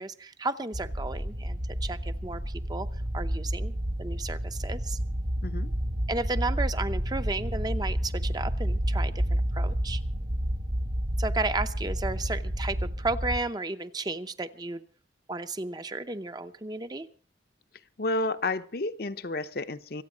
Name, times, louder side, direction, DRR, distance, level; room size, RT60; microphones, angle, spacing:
voice 1, 0.0-2.9 3.1-3.7 4.0-5.0 6.1-10.0 11.2-14.8 15.3-17.1, right 2 dB, 20° right, 11 dB, 0.7 m, -33 dB
sound 1, 0.7-13.4, equal, 45° right, 1.4 m, -30 dB
voice 2, 5.4-5.7 18.0-20.0, left 2 dB, 55° left, 11 dB, 0.8 m, -31 dB
25.5 x 8.9 x 5.0 m, 0.43 s
head